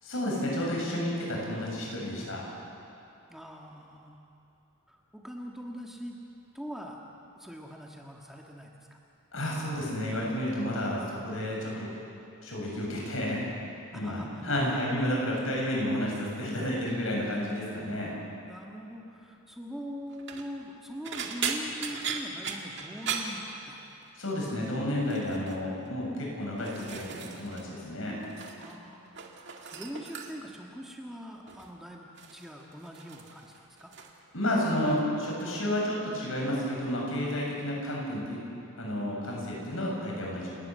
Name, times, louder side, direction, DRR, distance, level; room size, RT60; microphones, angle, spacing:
voice 1, 0.0-2.4 9.3-11.9 12.4-13.4 13.9-18.1 24.2-28.1 34.3-38.4 38.8-40.6, left 1 dB, 70° left, -3 dB, 7.5 m, -31 dB
voice 2, 3.3-4.2 4.9-6.2 6.5-7.0 7.4-9.0 13.9-15.0 18.4-23.8 24.4-24.6 28.6-29.1 29.7-33.9, equal, ahead, -1 dB, 1.6 m, -42 dB
sound 1, 20.1-20.5 21.0-24.1 24.4-24.7 25.1-25.6 26.2-27.7 27.9-28.8 29.1-30.6 31.5-31.8 32.2-34.2 34.5-35.0 35.4-35.6 36.9-37.0, right 6 dB, 55° right, 2.1 m, -38 dB
30.0 x 13.5 x 9.4 m, 2.7 s
head